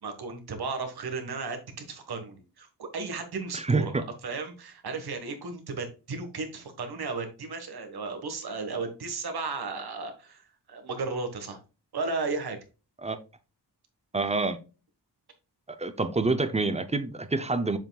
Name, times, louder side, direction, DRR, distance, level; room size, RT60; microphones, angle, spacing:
voice 1, 0.0-3.9 4.2-11.6 11.9-12.6, right 4 dB, 65° right, 6 dB, 1.5 m, -34 dB
voice 2, 3.5-4.0 13.0-13.2 14.1-14.6 15.8-17.8, right 3 dB, 15° right, 11 dB, 0.5 m, -27 dB
7.2 x 5.7 x 2.3 m, 0.32 s
wide cardioid pair, 175°, 42 cm